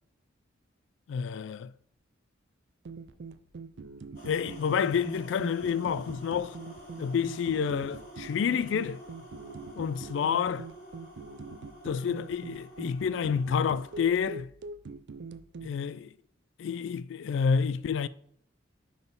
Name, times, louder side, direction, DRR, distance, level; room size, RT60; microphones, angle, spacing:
voice 1, 1.1-1.7 4.2-6.6 7.0-9.0 9.8-10.7 11.8-14.5 15.6-16.1 16.6-18.1, left 6 dB, 70° left, 0.3 m, -29 dB
sound 1, 2.9-15.7, right 3 dB, 60° right, 0.4 m, -44 dB
sound 2, 4.1-14.0, equal, 50° left, 2.0 m, -48 dB
5.9 x 3.8 x 5.2 m
head